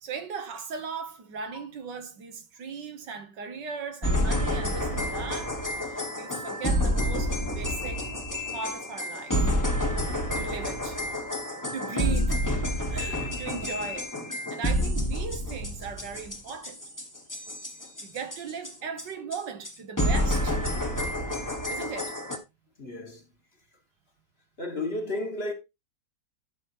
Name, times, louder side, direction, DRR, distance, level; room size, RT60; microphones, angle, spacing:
voice 1, 0.0-8.1 8.5-9.4 10.4-11.0 11.7-12.5 12.9-14.2 14.5-16.8 18.0-20.6 21.7-22.2, right 5 dB, 75° right, 1.8 m, -38 dB
sound 1, 4.0-18.7 19.0-19.1 19.3-19.4 19.6-19.7 20.0-22.4, equal, 10° left, 1.3 m, -29 dB
voice 2, 22.8-23.2 24.6-25.5, left 2 dB, 35° left, 1.8 m, -32 dB
11.0 x 6.2 x 3.0 m
omnidirectional pair, 1.9 m